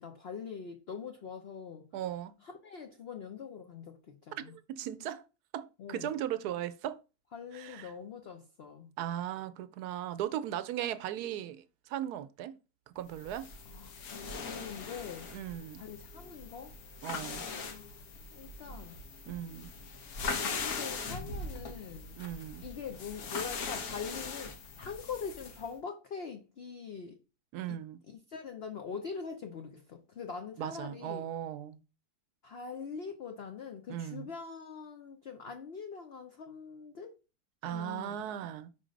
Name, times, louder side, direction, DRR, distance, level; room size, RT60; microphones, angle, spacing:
voice 1, 0.0-1.8 2.4-4.5 5.8-6.1 7.3-8.9 13.7-15.3 15.8-16.7 17.5-17.9 18.3-19.0 20.4-22.2 22.6-27.2 27.7-27.8 28.1-31.2 32.4-37.1 37.6-38.2, left 6 dB, 55° left, 0.7 m, -43 dB
voice 2, 1.9-2.3 4.5-5.2 5.5-7.0 7.5-7.9 9.0-12.5 13.0-13.5 15.3-15.8 17.0-17.5 19.3-19.7 22.2-22.7 27.5-28.0 30.6-31.8 33.9-34.3 37.6-38.7, right 11 dB, 80° right, 1.1 m, -37 dB
sound 1, 13.1-25.7, left 4 dB, 70° left, 1.4 m, -41 dB
5.1 x 3.8 x 5.1 m
omnidirectional pair, 1.7 m